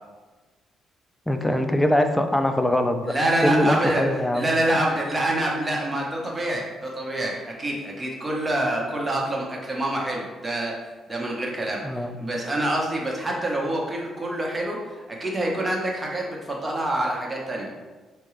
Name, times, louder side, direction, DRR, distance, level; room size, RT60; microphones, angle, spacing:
voice 1, 1.3-3.1 3.4-4.5 11.8-12.1, left 1 dB, 10° left, 7 dB, 0.3 m, -22 dB
voice 2, 3.0-4.1 4.3-10.8 11.1-17.7, right 1 dB, 20° right, -2 dB, 0.9 m, -26 dB
4.6 x 2.2 x 3.1 m, 1.3 s
cardioid pair, 90°, 0 cm